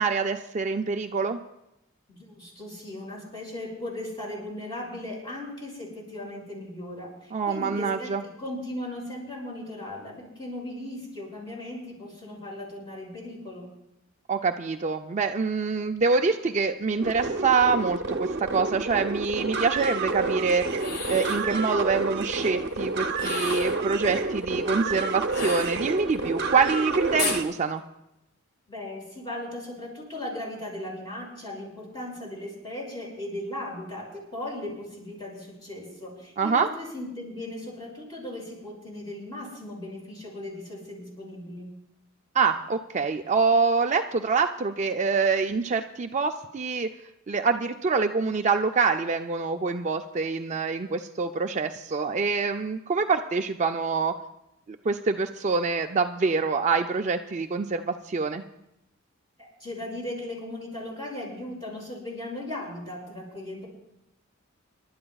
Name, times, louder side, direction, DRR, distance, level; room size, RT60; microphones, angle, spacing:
voice 1, 0.0-1.4 7.3-8.2 14.3-20.7 21.1-27.8 36.4-36.7 42.3-46.9 47.3-54.1 54.7-58.4, right 4 dB, 35° right, 6 dB, 0.4 m, -25 dB
voice 2, 2.1-13.7 28.7-41.7 59.4-63.7, left 1 dB, 20° left, -3 dB, 6.0 m, -37 dB
sound 1, 17.0-27.4, right 3 dB, 55° right, 0.8 m, -29 dB
sound 2, 20.7-21.5 23.1-23.9 25.3-26.2 27.2-27.5, left 4 dB, 50° left, 1.4 m, -33 dB
27.5 x 12.0 x 2.3 m, 0.84 s
head